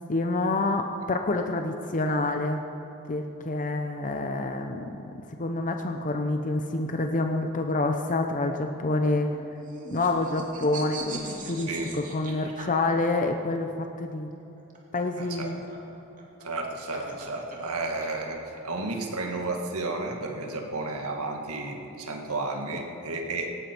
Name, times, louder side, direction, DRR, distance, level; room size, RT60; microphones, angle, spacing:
voice 1, 0.1-2.6 3.1-5.0 5.4-9.4 9.9-11.2 11.5-14.3 14.9-15.7, left 2 dB, 35° left, 5 dB, 0.7 m, -27 dB
sound 1, 9.3-13.3 14.6-18.8, right 3 dB, 35° right, 2.5 m, -40 dB
voice 2, 15.2-15.5 16.4-23.5, right 2 dB, 70° right, 2 dB, 1.8 m, -32 dB
18.0 x 17.5 x 4.6 m, 2.8 s
head